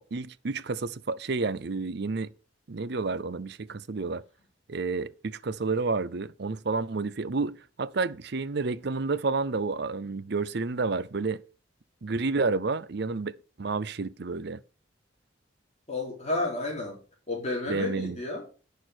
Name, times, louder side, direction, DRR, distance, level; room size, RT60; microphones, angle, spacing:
voice 1, 0.0-2.3 2.7-4.2 4.7-11.4 12.0-14.6 17.7-18.2, right 3 dB, 60° right, 0.6 m, -30 dB
voice 2, 15.9-17.0 17.3-18.4, left 2 dB, 35° left, 4.2 m, -31 dB
9.8 x 6.6 x 6.1 m
head